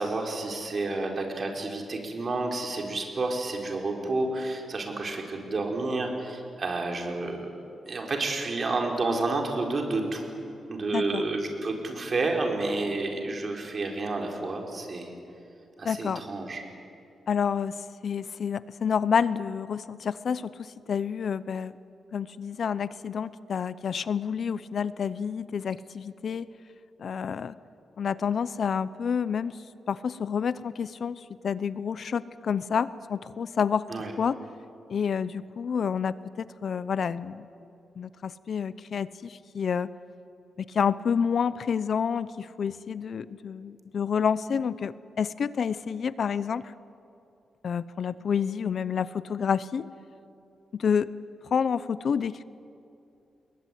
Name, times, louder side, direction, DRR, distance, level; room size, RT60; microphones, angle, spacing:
voice 1, 0.0-7.5 7.9-10.4 10.7-15.1 15.8-16.6 33.9-34.1, right 2 dB, 40° right, 2 dB, 4.9 m, -30 dB
voice 2, 10.9-11.2 15.8-16.2 17.3-17.7 18.0-21.7 22.1-26.5 27.0-27.6 28.0-29.6 29.9-33.9 34.2-34.4 34.9-37.5 38.0-39.9 40.6-46.7 47.6-49.9 50.8-51.1 51.5-52.4, left 7 dB, 60° left, 16 dB, 0.7 m, -29 dB
29.5 x 21.5 x 9.4 m, 2.7 s
cardioid pair, 115°, 0 cm